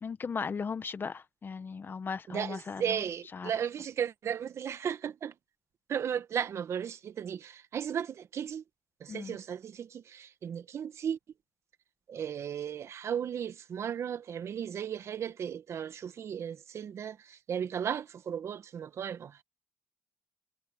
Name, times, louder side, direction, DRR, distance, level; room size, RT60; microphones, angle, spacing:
voice 1, 0.0-3.0 3.3-3.5 9.1-9.4, left 5 dB, 40° left, 1.2 m, -37 dB
voice 2, 2.3-5.3 5.9-8.6 9.0-11.2 12.1-19.4, right 8 dB, 60° right, 1.5 m, -35 dB
cardioid pair, 75°, 5 cm